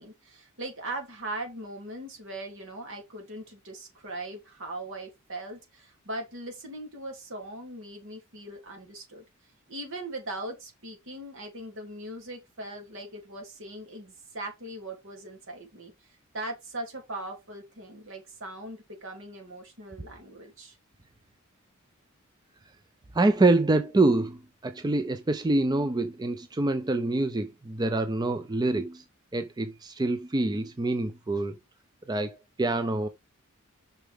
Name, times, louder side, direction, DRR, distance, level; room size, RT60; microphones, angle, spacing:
voice 1, 0.0-9.2 9.7-20.8, right 1 dB, 65° right, 2.9 m, -40 dB
voice 2, 23.1-29.0 29.3-31.6 32.1-33.1, right 2 dB, 20° right, 0.5 m, -26 dB
6.8 x 5.8 x 3.6 m
head